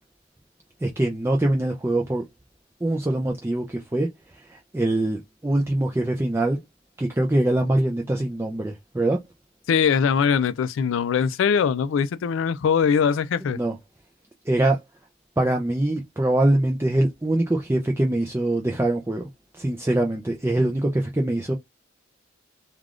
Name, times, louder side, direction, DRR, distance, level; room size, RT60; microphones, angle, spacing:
voice 1, 0.8-2.2 2.8-4.1 4.5-6.6 7.0-9.2 13.5-13.8 14.5-14.8 15.4-19.2 19.5-21.6, right 1 dB, 10° right, 0.4 m, -23 dB
voice 2, 9.7-13.6, left 7 dB, 70° left, 0.3 m, -21 dB
3.4 x 2.4 x 2.4 m
head